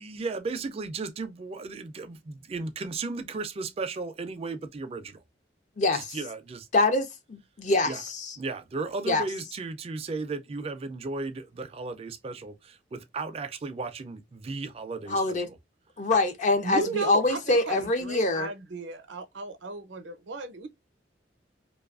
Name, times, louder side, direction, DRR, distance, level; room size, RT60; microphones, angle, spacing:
voice 1, 0.0-5.2 5.9-6.7 7.9-8.0 8.4-15.6, right 3 dB, 30° right, 0.3 m, -35 dB
voice 2, 5.8-6.2 6.7-8.3 9.1-9.2 15.1-15.5 16.0-18.5, left 2 dB, 40° left, 0.4 m, -25 dB
voice 3, 16.6-20.7, right 3 dB, 75° right, 0.6 m, -35 dB
2.5 x 2.3 x 2.3 m
head